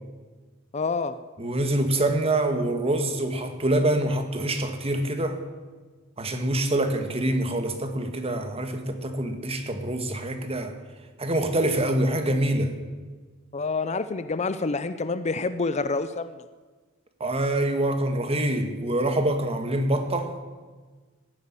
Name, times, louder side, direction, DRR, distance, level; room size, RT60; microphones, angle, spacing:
voice 1, 0.7-1.2 13.5-16.3, left 3 dB, 35° left, 12 dB, 0.6 m, -27 dB
voice 2, 1.4-5.4 6.2-10.7 11.2-12.7 17.2-20.4, right 1 dB, 30° right, 7 dB, 1.7 m, -25 dB
16.0 x 8.5 x 9.9 m, 1.4 s
head